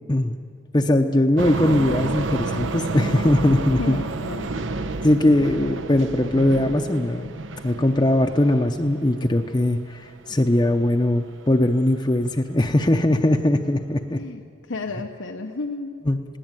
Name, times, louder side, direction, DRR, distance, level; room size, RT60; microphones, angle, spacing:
voice 1, 0.7-4.0 5.0-7.3 7.6-14.2 16.1-16.2, left 1 dB, 25° left, 3 dB, 0.6 m, -20 dB
sound 1, 1.4-9.9 10.4-10.8 11.2-11.3 11.8-11.9 12.2-12.4, right 3 dB, 85° right, 0.8 m, -30 dB
voice 2, 3.8-4.5 14.1-15.9, left 3 dB, 90° left, 4 dB, 0.9 m, -32 dB
20.5 x 17.0 x 9.0 m, 2.3 s
head